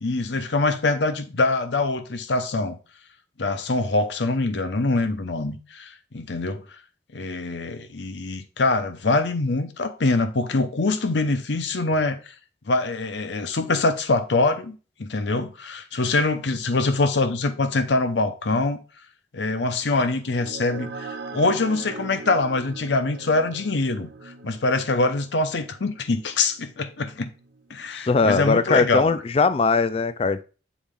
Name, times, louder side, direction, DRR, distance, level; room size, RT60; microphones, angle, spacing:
voice 1, 0.0-2.8 3.4-6.6 7.1-12.3 12.7-18.8 19.3-27.3 27.7-29.2, left 3 dB, 75° left, 0.7 m, -24 dB
sound 1, 20.0-28.8, right 4 dB, 90° right, 0.9 m, -41 dB
voice 2, 27.9-30.4, left 4 dB, 30° left, 0.3 m, -20 dB
7.2 x 4.1 x 3.6 m
head